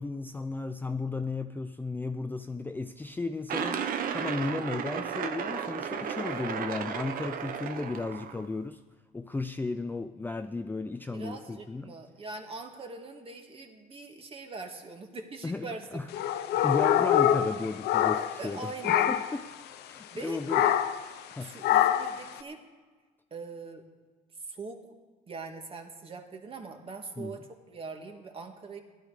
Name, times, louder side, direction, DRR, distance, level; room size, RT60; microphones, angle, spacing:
voice 1, 0.0-8.8 9.1-11.9 15.4-16.1 16.5-19.4 19.9-20.7 21.4-21.6 27.2-27.4, left 3 dB, 10° left, 8 dB, 0.4 m, -35 dB
sound 1, 3.5-8.5, right 7 dB, 60° right, 0.9 m, -34 dB
voice 2, 11.1-16.2 16.5-16.7 18.4-19.1 20.1-20.8 21.4-22.6 23.3-23.9 24.4-24.9 25.3-28.8, right 3 dB, 35° right, 4 dB, 1.8 m, -42 dB
sound 2, 16.1-18.5 18.8-19.4 20.5-21.0 21.6-22.2, left 11 dB, 75° left, 0.7 m, -25 dB
16.0 x 11.5 x 4.9 m, 1.4 s
cardioid pair, 110°, 17 cm